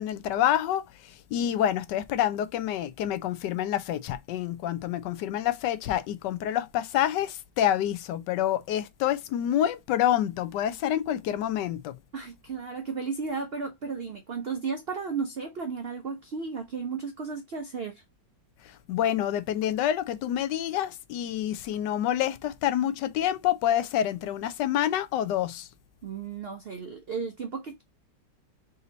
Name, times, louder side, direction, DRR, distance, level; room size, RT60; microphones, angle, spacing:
voice 1, 0.0-11.9 18.9-25.7, left 11 dB, 80° left, 1.2 m, -27 dB
voice 2, 12.1-18.0 26.0-27.8, right 5 dB, 70° right, 0.5 m, -34 dB
4.2 x 2.7 x 3.9 m
omnidirectional pair, 1.9 m